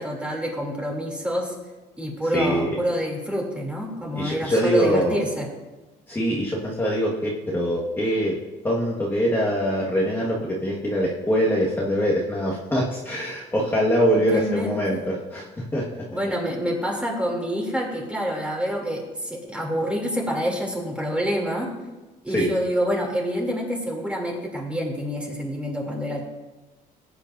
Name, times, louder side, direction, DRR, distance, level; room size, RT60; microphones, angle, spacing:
voice 1, 0.0-1.5 2.0-5.5 14.1-15.0 16.1-21.7 22.2-26.2, equal, 5° right, -1 dB, 2.9 m, -27 dB
voice 2, 2.3-2.7 4.1-5.2 6.1-8.4 8.6-15.9 22.3-22.5, equal, 15° left, -6 dB, 1.6 m, -23 dB
17.5 x 8.7 x 2.6 m, 1.2 s
cardioid pair, 110°, 17 cm